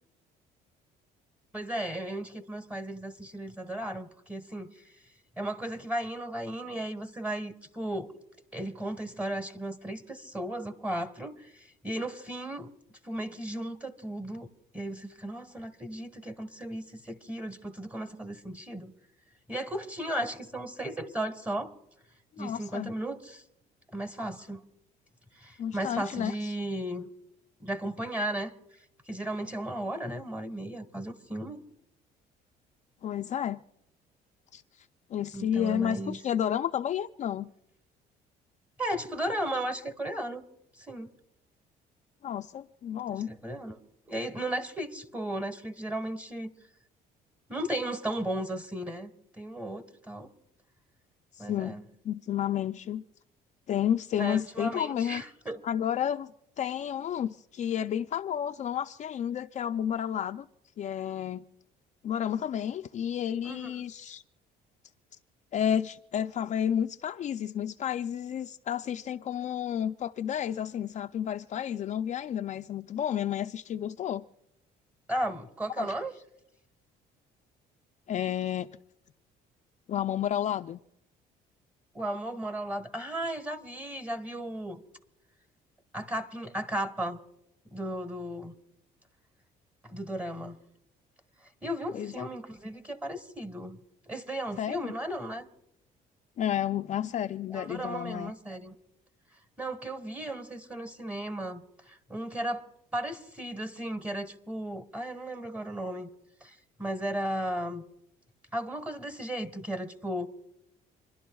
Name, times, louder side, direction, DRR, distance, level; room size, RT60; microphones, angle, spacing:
voice 1, 1.5-4.7 5.4-8.1 8.5-12.7 13.0-14.5 14.7-18.9 19.5-21.7 22.4-23.4 23.9-24.6 25.4-27.1 27.6-28.5 29.1-31.6 35.3-36.2 38.8-40.4 40.8-41.1 43.3-43.8 44.1-46.5 47.5-49.1 49.4-50.3 51.4-51.8 54.2-55.6 63.4-63.7 75.1-76.1 81.9-84.8 85.9-87.2 87.7-88.5 89.8-90.6 91.6-93.8 94.1-95.5 97.5-98.7 99.6-102.7 102.9-106.1 106.4-107.8 108.5-110.3, right 1 dB, 10° right, 1.3 m, -35 dB
voice 2, 22.4-22.9 25.6-26.5 33.0-33.6 34.5-34.6 35.1-37.5 42.2-43.3 51.4-51.8 52.0-53.0 53.7-55.2 55.6-56.3 56.6-60.5 60.8-61.4 62.0-64.2 65.5-74.2 75.8-75.9 78.1-78.7 79.9-80.8 91.9-92.2 94.6-94.9 96.4-98.3, left 9 dB, 45° left, 0.4 m, -31 dB
28.0 x 12.0 x 2.3 m
cardioid pair, 110°, 17 cm